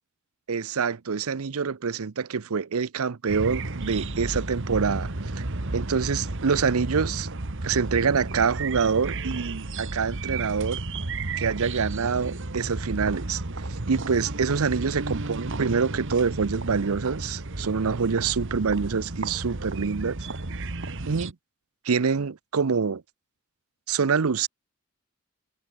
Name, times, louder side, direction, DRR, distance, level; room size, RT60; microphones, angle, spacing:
voice 1, 0.5-5.4 5.7-7.3 7.6-10.8 11.4-13.4 13.7-20.2 21.1-21.3 21.8-23.0 23.9-24.5, right 5 dB, 90° right, 0.7 m, -26 dB
sound 1, 3.3-21.3, right 2 dB, 60° right, 1.7 m, -33 dB
head